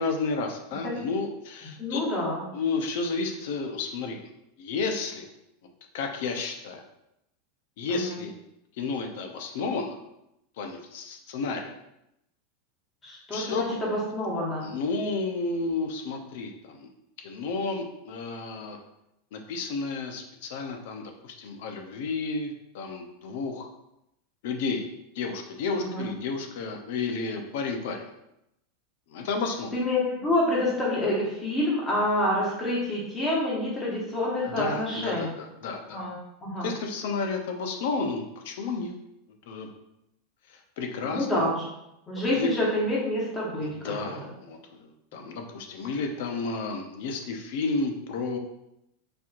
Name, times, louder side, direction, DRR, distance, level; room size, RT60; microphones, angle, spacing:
voice 1, 0.0-2.0 2.5-4.2 4.6-5.3 5.9-6.8 7.8-8.3 8.8-10.0 10.6-11.7 13.3-13.6 14.6-16.9 17.2-18.8 19.3-23.7 24.4-24.9 25.2-28.0 29.1-29.7 34.5-36.0 36.6-39.0 39.5-39.7 40.8-41.3 42.3-42.5 43.6-48.4, left 4 dB, 65° left, 4 dB, 0.6 m, -31 dB
voice 2, 1.8-2.4 7.9-8.2 13.0-14.7 25.8-26.1 29.7-35.3 35.9-36.1 36.4-36.7 41.1-41.6 42.1-44.2, left 1 dB, 15° left, -5 dB, 1.2 m, -27 dB
4.2 x 2.9 x 2.5 m, 0.84 s
supercardioid pair, 150°, 0 cm